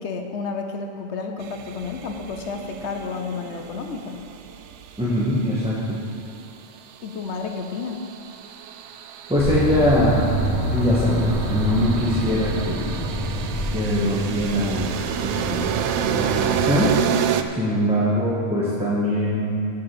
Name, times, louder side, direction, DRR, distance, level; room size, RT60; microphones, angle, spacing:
voice 1, 0.0-4.2 7.0-8.1, left 4 dB, 65° left, 4 dB, 1.0 m, -31 dB
sound 1, 1.4-5.7 7.3-17.4, right 8 dB, 70° right, 0.8 m, -29 dB
voice 2, 5.0-6.0 9.3-13.0 13.7-16.9 17.5-19.5, equal, 5° right, -8 dB, 1.4 m, -23 dB
sound 2, 9.4-16.1, equal, 90° left, 1.6 m, -27 dB
7.5 x 7.4 x 7.8 m, 2.4 s
omnidirectional pair, 1.3 m